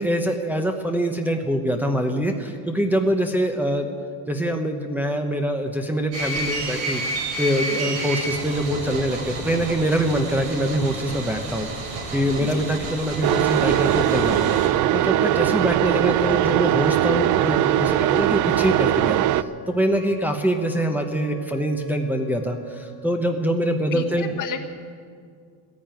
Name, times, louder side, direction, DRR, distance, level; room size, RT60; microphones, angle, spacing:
voice 1, 0.0-3.9 4.3-11.7 12.1-14.6 14.9-24.4, equal, 5° right, 2 dB, 0.9 m, -24 dB
sound 1, 6.1-14.7, right 2 dB, 80° right, 4.2 m, -30 dB
sound 2, 13.2-19.4, right 13 dB, 45° right, 0.5 m, -20 dB
Wind instrument woodwind instrument, 15.9-23.6, right 1 dB, 75° left, 2.8 m, -41 dB
voice 2, 23.9-24.6, left 8 dB, 45° left, 6 dB, 1.5 m, -33 dB
15.0 x 10.5 x 9.0 m, 2.2 s
cardioid pair, 135°, 42 cm